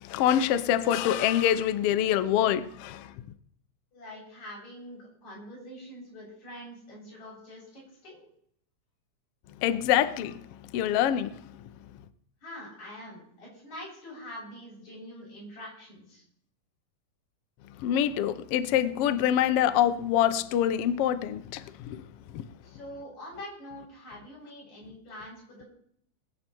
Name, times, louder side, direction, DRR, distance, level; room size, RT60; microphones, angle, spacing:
voice 1, 0.0-3.1 9.6-10.4 10.7-11.4 17.8-22.0 22.3-22.4, left 10 dB, 85° left, 1.3 m, -25 dB
voice 2, 3.9-8.3 12.4-16.2 22.6-25.7, left 1 dB, 60° left, 8.2 m, -44 dB
22.0 x 8.2 x 4.5 m
omnidirectional pair, 3.7 m